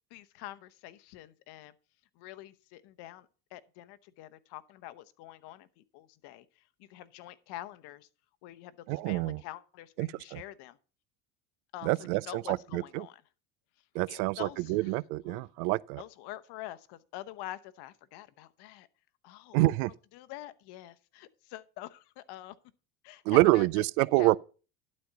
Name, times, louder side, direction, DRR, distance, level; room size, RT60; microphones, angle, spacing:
voice 1, 0.1-1.7 2.2-8.1 8.4-10.8 11.7-11.9 12.2-13.2 14.1-14.9 15.3-15.4 16.0-18.9 19.2-19.7 20.1-22.5 23.0-23.8 24.2-24.4, left 14 dB, 60° left, 0.9 m, -46 dB
voice 2, 8.9-9.4 10.0-10.4 11.8-13.1 13.9-16.0 19.5-19.9 23.3-24.4, right 20 dB, 80° right, 0.5 m, -27 dB
12.0 x 4.3 x 6.8 m
supercardioid pair, 100°, 44 cm